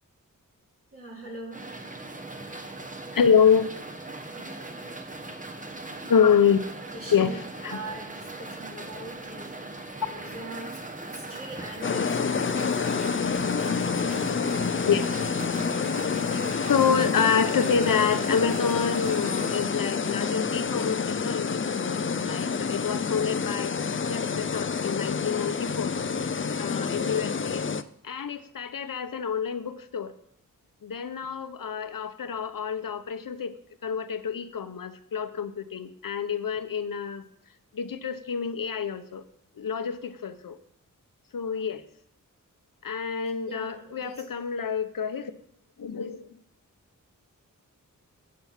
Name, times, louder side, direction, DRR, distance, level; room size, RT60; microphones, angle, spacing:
voice 1, 0.9-1.6 4.3-4.9 6.9-7.4 7.7-9.6 10.0-12.9 43.5-44.3, right 1 dB, 40° right, -3 dB, 3.1 m, -41 dB
sound 1, 1.5-19.6, right 2 dB, 25° right, 1.4 m, -39 dB
voice 2, 3.1-3.8 6.1-6.6 7.1-7.8 14.8-15.4 16.6-23.8 24.1-25.9 26.6-27.7 28.0-30.1 30.8-33.5 33.8-37.2 37.7-39.2 39.6-40.6 41.3-41.8 42.8-45.3 45.8-46.3, left 7 dB, 75° left, 10 dB, 1.0 m, -27 dB
sound 2, 11.8-27.8, left 5 dB, 35° left, 0.5 m, -28 dB
13.0 x 8.6 x 5.9 m, 0.75 s
wide cardioid pair, 90°, 34 cm